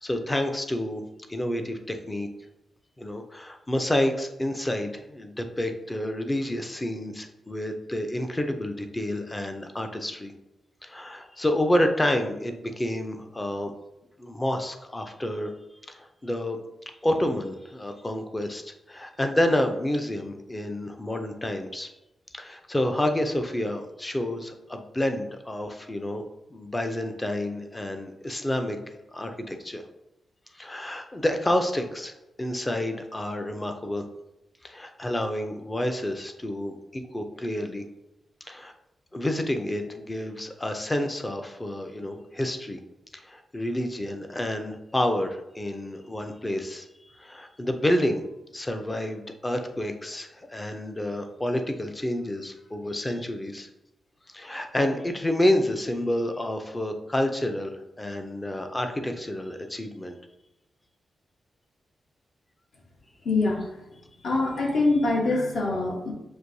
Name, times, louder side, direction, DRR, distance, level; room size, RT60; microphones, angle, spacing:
voice 1, 0.0-1.0 1.3-2.3 3.0-10.3 10.8-13.7 14.2-15.5 15.9-16.6 17.0-21.9 22.3-26.2 26.5-28.8 29.1-29.8 30.5-32.1 32.4-34.0 34.6-37.8 38.4-38.7 39.1-42.8 43.1-46.9 47.2-48.2 48.5-53.7 54.3-60.1, left 1 dB, 15° left, 5 dB, 0.4 m, -29 dB
voice 2, 63.2-63.7 64.2-66.1, left 2 dB, 65° left, -1 dB, 1.0 m, -24 dB
6.0 x 2.6 x 2.6 m, 0.93 s
wide cardioid pair, 130°, 0 cm